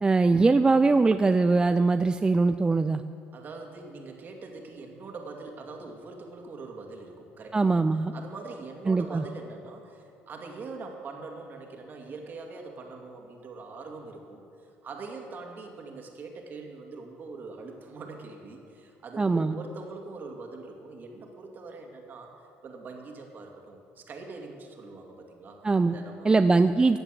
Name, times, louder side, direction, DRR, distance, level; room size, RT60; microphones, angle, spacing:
voice 1, 0.0-3.0 7.5-8.1 8.9-9.2 19.2-19.5 25.6-26.0 26.3-27.0, right 3 dB, 20° right, 10 dB, 0.4 m, -22 dB
voice 2, 3.3-7.8 8.1-22.3 22.6-26.4, right 3 dB, 45° right, 2 dB, 2.3 m, -43 dB
15.5 x 8.0 x 7.7 m, 2.6 s
supercardioid pair, 90°, 4 cm